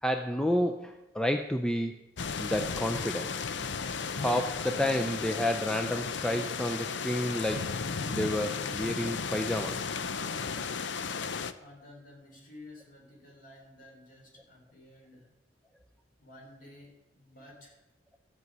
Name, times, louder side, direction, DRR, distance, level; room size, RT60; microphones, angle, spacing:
voice 1, 0.0-2.0 2.4-3.3 4.2-7.8 8.1-9.8, equal, 5° left, 6 dB, 0.5 m, -30 dB
sound 1, 2.2-11.5, left 5 dB, 65° left, 0.6 m, -34 dB
voice 2, 11.5-15.3 16.2-17.8, left 1 dB, 45° left, -1 dB, 3.7 m, -52 dB
13.5 x 5.5 x 9.4 m, 0.99 s
head